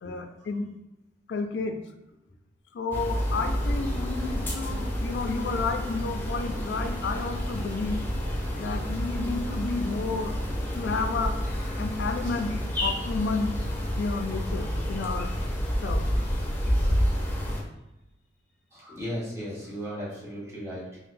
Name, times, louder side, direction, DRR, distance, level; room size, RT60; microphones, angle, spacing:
voice 1, 0.0-0.7 1.3-1.8 2.7-8.0 8.6-10.4 10.7-11.3 11.8-12.5 12.8-13.6 14.0-15.3 15.8-16.0, left 4 dB, 75° left, 5 dB, 0.3 m, -31 dB
sound 1, 2.9-17.6, equal, 10° left, 0.5 m, -29 dB
voice 2, 18.7-21.0, equal, 15° right, -7 dB, 1.2 m, -37 dB
4.5 x 2.0 x 2.5 m, 0.89 s
head